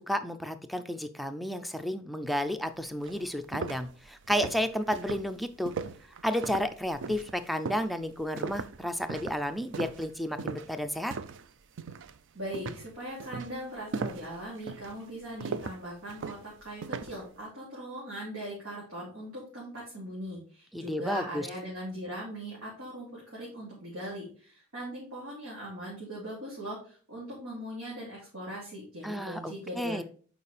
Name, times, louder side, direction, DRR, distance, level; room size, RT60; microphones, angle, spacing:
voice 1, 0.0-5.7 6.2-11.1 20.7-21.5 29.0-30.0, equal, ahead, 10 dB, 0.4 m, -32 dB
sound 1, 2.5-2.6 3.0-11.5 11.8-12.2 12.5-17.2, right 5 dB, 60° right, 0.4 m, -38 dB
voice 2, 12.3-30.0, equal, 85° right, -6 dB, 2.8 m, -40 dB
7.0 x 5.0 x 3.3 m, 0.43 s
head